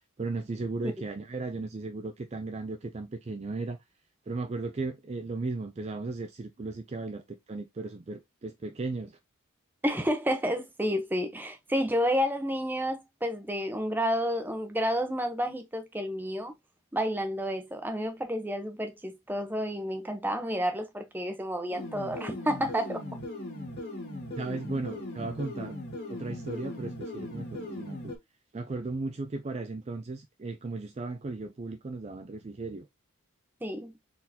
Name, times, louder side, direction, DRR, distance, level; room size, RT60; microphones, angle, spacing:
voice 1, 0.2-3.8 4.3-9.2 24.4-25.8 26.1-28.1 28.5-32.9, right 3 dB, 30° right, 0.4 m, -36 dB
voice 2, 9.8-16.5 16.9-23.0 33.6-33.9, equal, 10° right, 0.8 m, -30 dB
sound 1, 21.7-28.2, left 1 dB, 45° left, 2.0 m, -39 dB
4.4 x 3.8 x 2.7 m
head